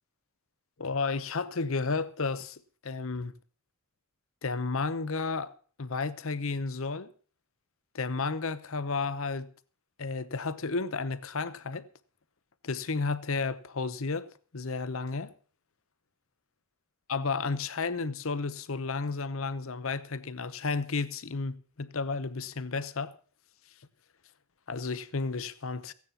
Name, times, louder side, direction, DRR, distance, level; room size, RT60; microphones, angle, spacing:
voice 1, 0.8-3.3 4.4-5.5 5.8-7.1 7.9-9.5 10.0-11.9 12.6-15.3 17.1-23.2 24.7-25.9, left 4 dB, 70° left, 0.9 m, -32 dB
15.5 x 9.5 x 5.8 m
head